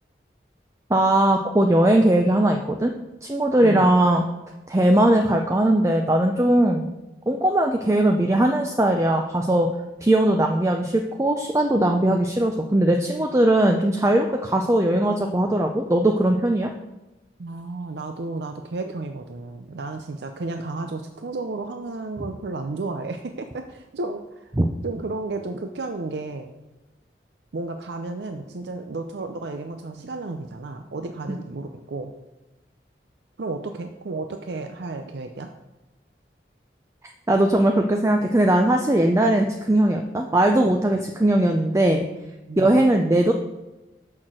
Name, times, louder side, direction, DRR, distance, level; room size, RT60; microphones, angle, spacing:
voice 1, 0.9-2.9 3.2-4.2 4.7-6.9 7.3-9.7 10.0-16.7 24.6-24.7 31.3-31.4 37.3-42.1 42.6-43.3, right 1 dB, 15° right, 3 dB, 0.5 m, -19 dB
voice 2, 17.4-24.5 24.8-26.5 27.5-32.1 33.4-35.5 42.5-42.9, right 3 dB, 75° right, 6 dB, 0.5 m, -32 dB
6.5 x 5.9 x 6.2 m, 1.1 s
head